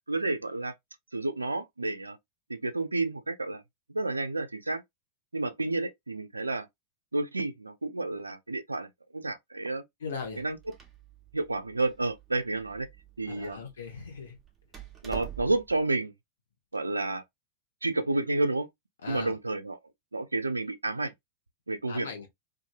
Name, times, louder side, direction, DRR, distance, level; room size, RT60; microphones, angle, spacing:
voice 1, 0.1-0.7 1.1-2.2 2.5-3.6 3.9-4.8 5.3-6.7 7.1-9.8 10.4-10.6 11.3-12.9 13.2-13.6 15.0-16.1 16.7-17.2 17.8-18.7 19.1-19.8 20.1-21.1 21.7-22.1, right 2 dB, 80° right, 0.3 m, -30 dB
voice 2, 10.0-10.4 13.3-14.4 19.0-19.3 21.9-22.3, left 5 dB, 70° left, 1.0 m, -39 dB
Door, 10.3-15.8, right 8 dB, 15° right, 0.8 m, -46 dB
2.6 x 2.5 x 2.4 m
figure-of-eight pair, 90°, 0 cm